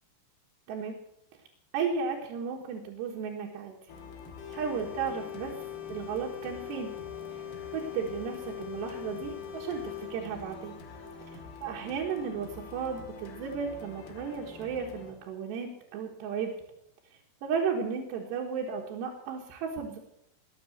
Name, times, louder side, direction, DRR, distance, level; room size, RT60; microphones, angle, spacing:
voice 1, 0.7-1.0 1.7-3.8 4.5-5.6 5.9-6.9 7.7-10.7 11.3-16.5 17.4-20.0, right 6 dB, 80° right, -1 dB, 3.6 m, -34 dB
sound 1, 3.9-15.1, left 4 dB, 70° left, 3.8 m, -47 dB
sound 2, 4.4-10.1, left 11 dB, 55° left, 3.6 m, -41 dB
21.0 x 7.4 x 7.8 m, 0.79 s
omnidirectional pair, 4.9 m